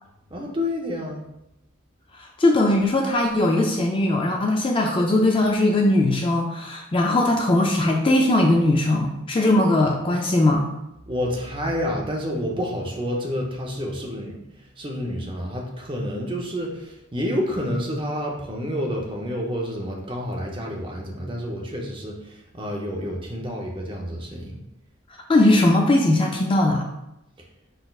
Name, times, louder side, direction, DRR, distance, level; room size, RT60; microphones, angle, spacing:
voice 1, 0.3-1.2 11.1-24.6, equal, 25° right, -1 dB, 0.7 m, -29 dB
voice 2, 2.2-10.7 25.3-26.9, left 1 dB, 25° left, 2 dB, 0.3 m, -20 dB
5.2 x 4.0 x 2.3 m, 0.89 s
head